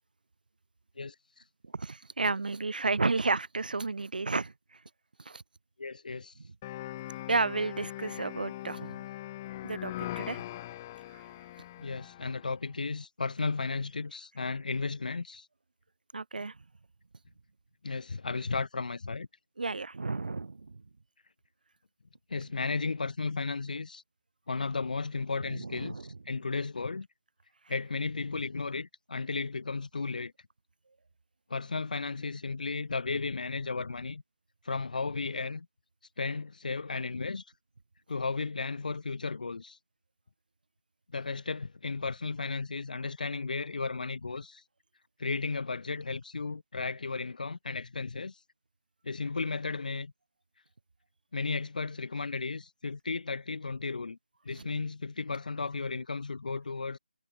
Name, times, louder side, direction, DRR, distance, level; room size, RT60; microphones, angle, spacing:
voice 1, 1.0-1.4 5.8-6.4 11.8-15.5 17.8-19.3 22.3-24.0 24.5-27.1 27.7-30.3 31.5-34.2 34.6-35.7 36.2-37.5 38.1-39.8 41.1-44.6 45.2-48.4 49.0-50.1 51.3-54.2 54.5-57.0, left 4 dB, 60° left, 5.6 m, -34 dB
voice 2, 1.7-4.5 5.2-5.4 6.4-6.5 7.3-9.0 9.6-10.4 11.1-11.2 16.1-16.6 19.6-20.8 25.5-26.1 54.6-54.7, right 3 dB, 65° right, 1.5 m, -32 dB
sound 1, 6.6-12.6, left 15 dB, 20° left, 0.8 m, -41 dB
figure-of-eight pair, 155°, 5 cm